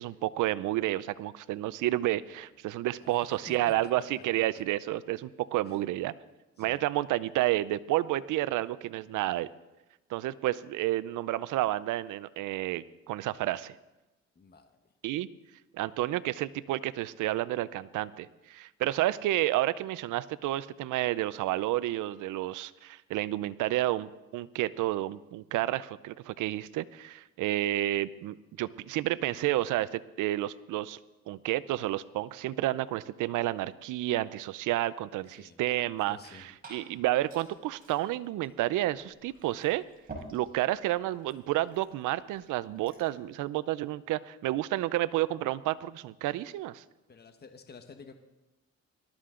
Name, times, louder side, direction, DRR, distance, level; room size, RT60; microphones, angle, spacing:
voice 1, 0.0-6.1 6.6-9.5 10.1-13.7 15.0-15.3 15.7-31.0 31.3-39.8 40.3-46.8, right 15 dB, 85° right, 17 dB, 0.6 m, -30 dB
voice 2, 3.0-4.2 5.6-5.9 6.6-6.8 14.3-14.8 35.4-35.6 36.1-36.5 47.1-48.1, left 5 dB, 35° left, 6 dB, 1.2 m, -51 dB
Liquid, 36.1-43.2, right 2 dB, 30° right, 5.1 m, -52 dB
19.0 x 13.0 x 3.8 m, 1.0 s
cardioid pair, 90°, 30 cm